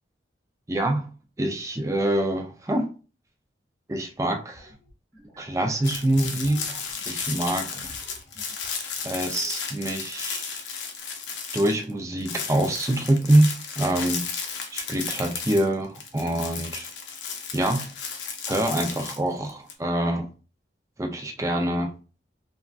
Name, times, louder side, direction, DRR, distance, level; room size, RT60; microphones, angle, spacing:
voice 1, 0.7-1.1 1.4-2.9 3.9-4.7 5.4-6.8 7.1-7.9 9.0-10.5 11.5-13.5 13.8-16.9 17.5-17.9 18.5-20.3 21.0-21.9, right 1 dB, 15° right, 3 dB, 0.4 m, -25 dB
sound 1, 4.5-8.7 9.0-9.5, equal, 15° left, 1.1 m, -49 dB
sound 2, 5.8-11.9 12.2-19.7, left 6 dB, 85° left, 0.6 m, -34 dB
3.4 x 2.4 x 2.3 m, 0.35 s
head